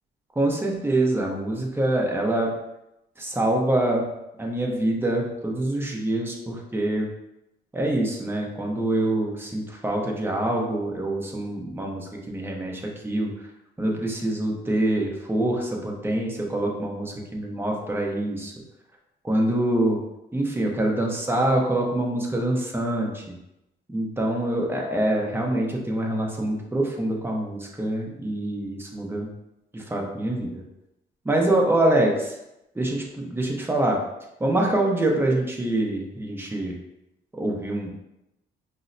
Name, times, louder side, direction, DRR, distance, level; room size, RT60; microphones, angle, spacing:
voice 1, 0.4-2.5 3.2-4.1 4.4-7.1 7.7-13.3 13.8-18.5 19.2-20.0 20.3-23.4 23.9-29.3 29.7-30.6 31.2-32.1 32.7-34.0 34.4-36.8 37.3-37.9, right 1 dB, 10° right, -1 dB, 0.7 m, -25 dB
5.2 x 2.1 x 2.6 m, 0.89 s
cardioid pair, 90°, 20 cm